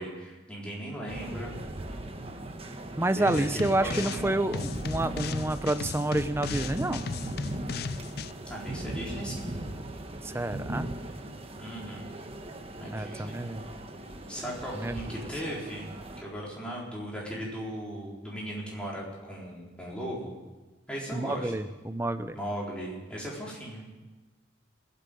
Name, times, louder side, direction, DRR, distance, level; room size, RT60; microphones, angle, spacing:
voice 1, 0.0-1.6 3.2-4.4 8.4-9.5 11.6-12.2 12.8-13.4 14.3-20.4 20.9-21.5 22.3-23.8, equal, 5° left, -5 dB, 4.1 m, -37 dB
sound 1, 1.1-16.2, right 1 dB, 30° right, 1.2 m, -39 dB
voice 2, 3.0-7.1 10.2-10.9 12.9-13.6 14.7-15.0 21.1-22.4, right 1 dB, 15° right, 11 dB, 0.6 m, -29 dB
sound 2, 3.3-4.2 4.5-8.3, left 5 dB, 55° left, 0.4 m, -36 dB
17.0 x 8.5 x 9.2 m, 1.2 s
head